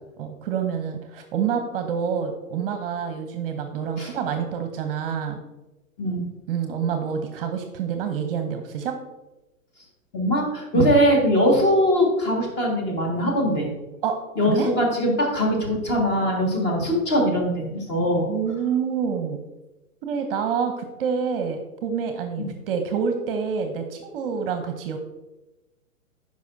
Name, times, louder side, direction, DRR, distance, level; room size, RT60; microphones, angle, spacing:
voice 1, 0.2-5.4 6.5-9.0 10.7-11.0 14.0-14.7 18.0-19.4 20.0-25.0, right 7 dB, 40° right, 6 dB, 0.7 m, -27 dB
voice 2, 10.1-13.7 14.4-18.3 22.4-22.5, equal, 25° left, 0 dB, 1.6 m, -21 dB
9.3 x 5.2 x 2.6 m, 1.0 s
hypercardioid pair, 135°, 43 cm